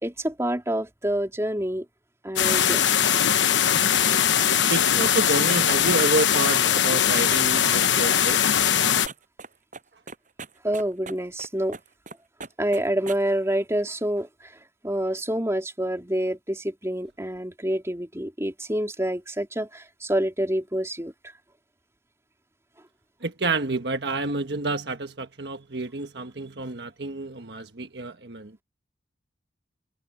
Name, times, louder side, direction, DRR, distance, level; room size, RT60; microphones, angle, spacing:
voice 1, 0.0-1.9 2.2-3.2 10.6-11.8 12.6-14.5 14.8-21.1, right 1 dB, 15° right, 3.6 m, -27 dB
sound 1, 2.4-9.1, left 9 dB, 85° left, 1.0 m, -21 dB
voice 2, 4.4-8.4 23.2-28.6, right 3 dB, 65° right, 1.5 m, -29 dB
sound 2, 8.7-9.5 9.7-9.8 10.1-11.5 11.7-12.1 12.4-13.2, right 4 dB, 45° right, 7.3 m, -38 dB
head